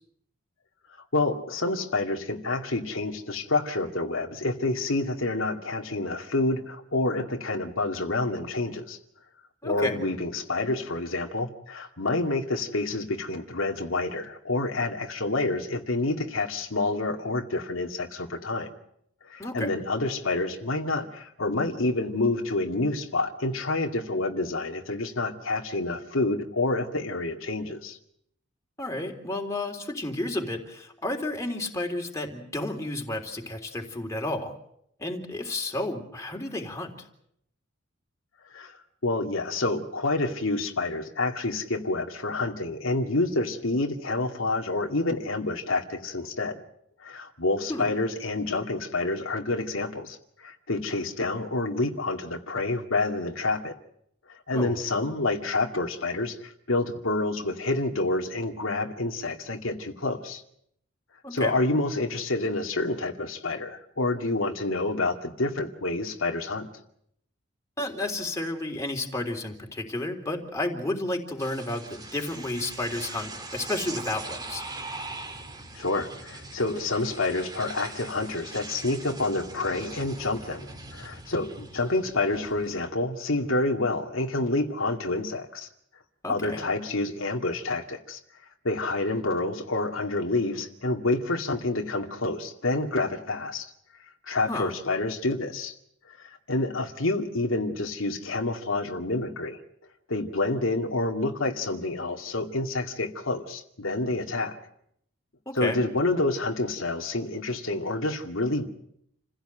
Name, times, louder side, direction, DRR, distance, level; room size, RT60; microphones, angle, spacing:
voice 1, 1.1-9.0 9.6-18.7 19.3-28.0 38.5-38.7 39.0-46.6 47.0-53.7 54.3-60.4 61.3-66.7 75.7-85.7 86.3-88.2 88.6-93.7 94.3-95.7 96.1-99.6 100.1-104.6 105.5-108.7, left 2 dB, 80° left, 2 dB, 2.4 m, -28 dB
voice 2, 9.6-10.0 19.4-19.8 28.8-34.5 35.0-37.1 47.7-47.9 54.5-54.8 61.2-61.6 67.8-74.6 86.2-86.7 94.5-94.7 105.5-105.8, left 2 dB, 15° left, 1 dB, 3.6 m, -32 dB
sound 1, 71.4-82.9, right 2 dB, 20° right, 2.1 m, -41 dB
29.0 x 16.5 x 9.1 m, 0.74 s
head